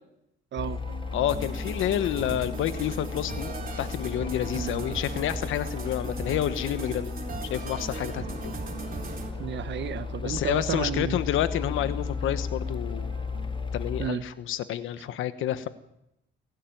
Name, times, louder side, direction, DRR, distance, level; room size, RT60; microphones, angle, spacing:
sound 1, 0.6-14.1, left 5 dB, 25° left, 1.1 m, -35 dB
sound 2, 0.7-14.9, right 9 dB, 85° right, 3.2 m, -49 dB
voice 1, 1.1-7.1 7.5-8.5 10.2-13.1 13.7-15.7, left 11 dB, 85° left, 13 dB, 1.3 m, -29 dB
sound 3, 1.3-9.3, right 4 dB, 45° right, 3.8 m, -38 dB
voice 2, 4.5-4.9 9.4-11.2 14.0-14.2, right 9 dB, 65° right, 13 dB, 1.3 m, -32 dB
28.5 x 12.0 x 9.3 m, 0.85 s
cardioid pair, 90°, 20 cm